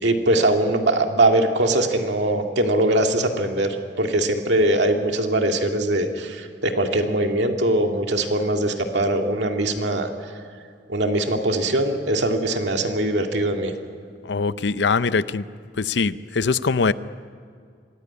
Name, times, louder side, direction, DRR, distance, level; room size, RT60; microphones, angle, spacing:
voice 1, 0.0-10.1 10.9-13.7, right 1 dB, 75° right, 3 dB, 2.2 m, -21 dB
voice 2, 14.2-15.5 15.8-16.9, left 4 dB, 75° left, 15 dB, 0.6 m, -22 dB
25.0 x 16.5 x 9.8 m, 2.2 s
head